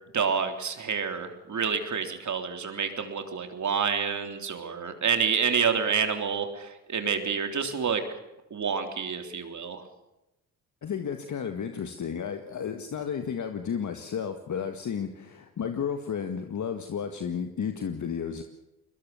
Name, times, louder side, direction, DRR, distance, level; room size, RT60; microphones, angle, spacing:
voice 1, 0.1-8.0 8.5-9.8, right 6 dB, 50° right, 6 dB, 3.5 m, -28 dB
voice 2, 10.8-18.4, left 7 dB, 50° left, 7 dB, 1.8 m, -32 dB
21.5 x 21.0 x 7.1 m, 0.95 s
supercardioid pair, 60°, 37 cm